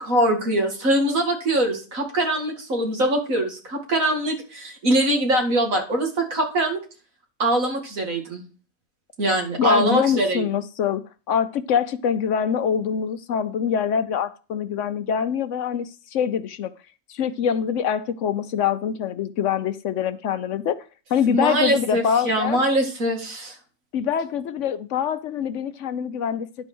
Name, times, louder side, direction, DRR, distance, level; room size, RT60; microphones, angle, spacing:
voice 1, 0.0-6.8 7.4-8.4 9.2-10.4 21.3-23.5, right 1 dB, 75° right, 1 dB, 2.6 m, -23 dB
voice 2, 9.6-16.7 17.1-20.8 21.1-22.6 23.9-26.5, left 8 dB, 65° left, 12 dB, 0.9 m, -24 dB
11.0 x 4.6 x 6.1 m, 0.35 s
omnidirectional pair, 1.4 m